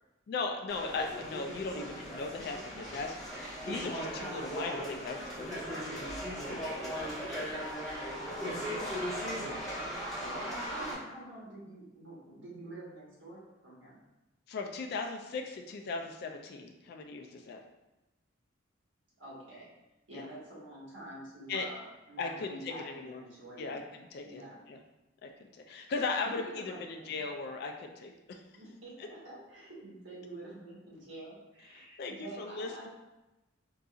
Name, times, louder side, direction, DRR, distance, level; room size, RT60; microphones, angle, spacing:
voice 1, 0.3-3.2 3.7-6.1 6.5-6.9 8.5-8.7 14.5-17.6 20.1-20.3 21.5-21.7 22.2-23.2 23.6-24.4 24.7-24.8 25.2-28.4 29.0-29.1 31.7-32.9, left 3 dB, 55° left, 3 dB, 0.3 m, -38 dB
sound 1, 0.7-10.9, equal, ahead, 1.2 m, -38 dB
voice 2, 9.3-14.0 19.2-19.7 20.1-23.8 24.2-24.6 26.2-27.2 28.5-32.9, right 1 dB, 70° right, -6 dB, 1.3 m, -48 dB
3.8 x 2.6 x 2.4 m, 0.99 s
head